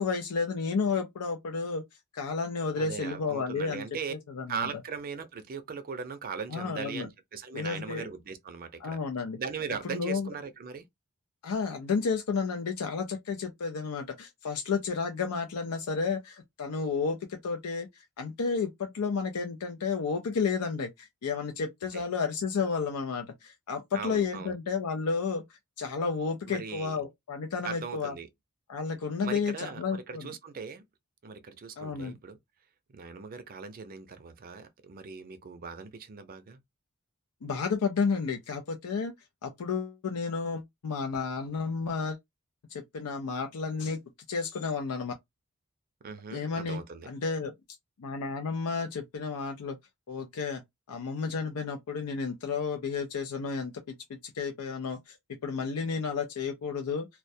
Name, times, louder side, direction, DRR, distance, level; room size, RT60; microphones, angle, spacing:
voice 1, 0.0-1.8 2.1-3.8 4.1-4.7 6.5-7.1 7.5-8.1 8.8-9.4 9.8-10.3 11.4-25.4 25.8-28.1 28.7-30.3 31.8-32.2 37.4-39.1 39.4-42.2 42.7-44.0 44.3-45.1 46.3-46.8 47.1-47.5 48.0-49.8 50.1-50.6 50.9-55.2 55.4-57.1, left 5 dB, 90° left, 0.5 m, -32 dB
voice 2, 2.8-4.1 4.5-9.0 9.4-10.9 21.9-22.0 23.9-24.5 26.5-27.0 27.6-28.3 29.2-30.8 31.2-32.4 32.9-36.6 46.0-47.1, right 5 dB, 40° right, 0.4 m, -39 dB
2.2 x 2.1 x 2.6 m
head